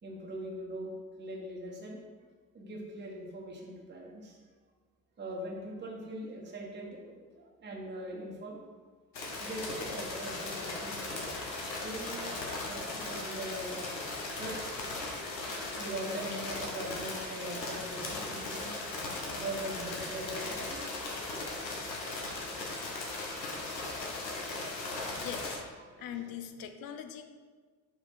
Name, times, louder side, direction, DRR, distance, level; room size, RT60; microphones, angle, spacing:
voice 1, 0.0-2.0 2.5-4.4 5.2-8.6 9.4-11.2 11.8-13.8 14.4-14.8 15.8-18.7 19.1-20.9 21.9-22.4 25.9-26.3, right 1 dB, 20° right, -2 dB, 1.3 m, -42 dB
sound 1, 9.1-25.6, left 2 dB, 85° left, 1.1 m, -38 dB
voice 2, 25.2-25.6 26.0-27.2, left 9 dB, 45° left, 8 dB, 0.7 m, -41 dB
5.6 x 5.0 x 4.2 m, 1.5 s
figure-of-eight pair, 60°, 50 cm